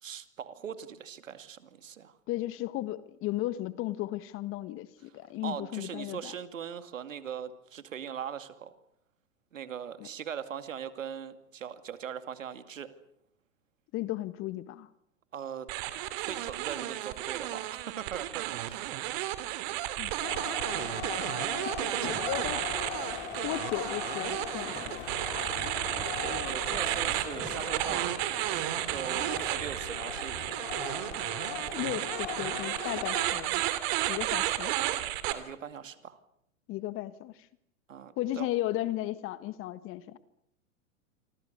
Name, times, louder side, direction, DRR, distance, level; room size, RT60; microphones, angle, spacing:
voice 1, 0.0-2.2 5.4-8.7 9.5-12.9 15.3-15.7 16.2-19.7 21.4-22.5 26.2-28.1 28.9-30.6 35.3-36.2 37.9-38.5, right 8 dB, 70° right, 11 dB, 2.5 m, -40 dB
voice 2, 2.3-6.3 10.0-10.1 13.9-14.9 20.0-20.1 21.8-22.6 23.4-25.0 31.7-33.6 34.1-34.7 36.7-37.3 38.2-40.2, left 15 dB, 30° left, 15 dB, 1.5 m, -35 dB
sound 1, 15.7-35.3, right 15 dB, 45° right, 2.8 m, -33 dB
sound 2, 20.2-33.2, left 9 dB, 50° left, 4.8 m, -40 dB
sound 3, 22.0-29.8, right 7 dB, 20° right, 7.7 m, -50 dB
28.0 x 25.0 x 6.8 m, 0.77 s
figure-of-eight pair, 105°, 40 cm